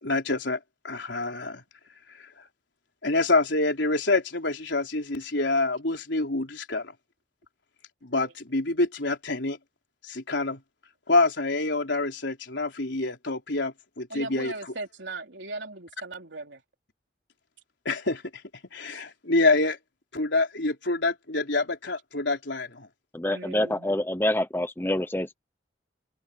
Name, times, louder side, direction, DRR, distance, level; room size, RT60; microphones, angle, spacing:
voice 1, 0.0-0.6 0.8-1.6 2.2-2.3 3.0-6.9 8.0-9.6 10.0-10.6 11.1-14.5 17.9-18.2 18.7-19.8 20.1-22.9, left 2 dB, 75° left, 3.8 m, -26 dB
voice 2, 14.1-16.6 23.3-23.9, right 3 dB, 80° right, 3.4 m, -39 dB
voice 3, 23.1-25.3, left 1 dB, 10° left, 0.7 m, -26 dB
head